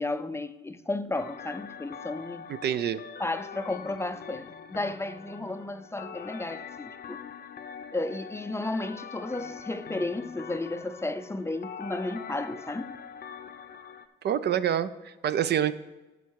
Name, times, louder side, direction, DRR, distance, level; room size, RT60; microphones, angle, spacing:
voice 1, 0.0-2.5 3.2-7.2 7.9-13.0, left 2 dB, 15° left, 0.4 m, -33 dB
sound 1, 1.1-14.1, left 7 dB, 50° left, 0.7 m, -43 dB
voice 2, 2.5-3.0 14.2-15.7, right 9 dB, 55° right, 0.5 m, -27 dB
9.4 x 5.8 x 4.6 m
cardioid pair, 90°, 20 cm